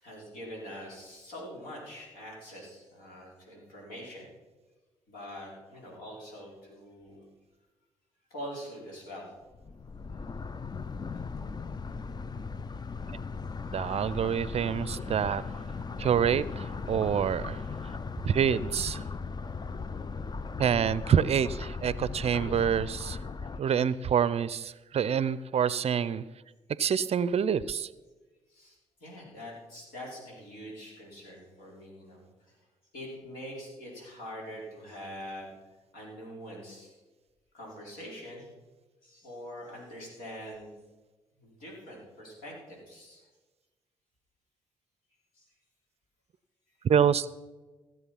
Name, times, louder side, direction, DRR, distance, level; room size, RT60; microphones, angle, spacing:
voice 1, 0.0-4.3 5.1-7.2 8.3-9.3 23.5-23.7 28.5-32.6 32.9-35.5 35.9-37.0 37.5-38.5 39.0-40.7 41.4-43.2 45.3-45.5 46.8-46.9, equal, 70° left, -3 dB, 4.8 m, -44 dB
sound 1, 9.5-23.6, left 4 dB, 25° left, 0.6 m, -38 dB
voice 2, 13.7-15.4 16.0-17.6 18.2-19.0 20.6-23.2 23.6-26.2 26.8-27.9 46.8-47.3, right 8 dB, 45° right, 18 dB, 0.5 m, -27 dB
16.0 x 7.7 x 5.8 m, 1.2 s
hypercardioid pair, 45°, 15 cm